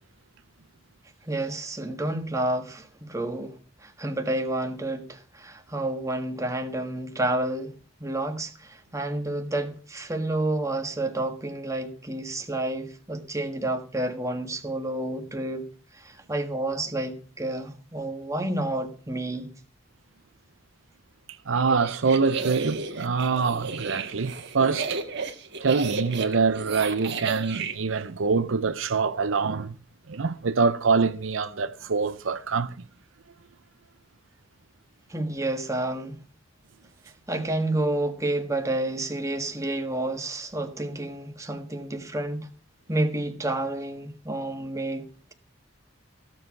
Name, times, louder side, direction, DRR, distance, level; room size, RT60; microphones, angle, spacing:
voice 1, 1.3-3.5 3.8-7.7 8.0-15.7 16.0-19.5 35.1-36.2 37.3-42.5 42.9-45.0, right 1 dB, 15° right, 1.6 m, -30 dB
voice 2, 21.5-25.0 25.6-29.8 30.1-32.7, right 4 dB, 90° right, 0.7 m, -25 dB
sound 1, 21.6-27.7, right 5 dB, 60° right, 1.7 m, -33 dB
15.5 x 7.4 x 5.9 m
head